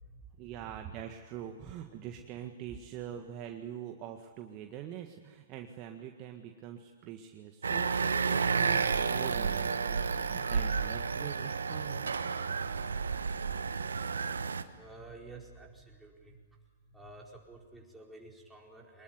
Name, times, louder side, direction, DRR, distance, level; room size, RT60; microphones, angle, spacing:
voice 1, 0.4-12.1, right 10 dB, 35° right, 4 dB, 1.7 m, -44 dB
sound 1, 7.6-14.6, right 5 dB, 75° right, 1.3 m, -31 dB
voice 2, 14.7-16.6 16.9-19.0, right 3 dB, 5° right, -2 dB, 4.7 m, -51 dB
24.5 x 20.5 x 9.6 m, 1.5 s
figure-of-eight pair, 120°, 0 cm